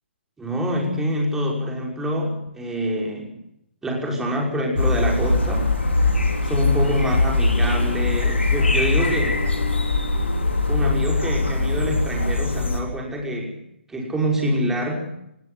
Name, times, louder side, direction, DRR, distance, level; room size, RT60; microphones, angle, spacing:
voice 1, 0.4-3.4 3.8-5.7 6.4-9.4 10.7-13.6 13.9-15.1, equal, 5° right, -1 dB, 5.7 m, -26 dB
sound 1, 4.7-12.8, left 3 dB, 90° left, 4.4 m, -21 dB
19.5 x 16.0 x 9.8 m, 0.80 s
figure-of-eight pair, 135°, 6 cm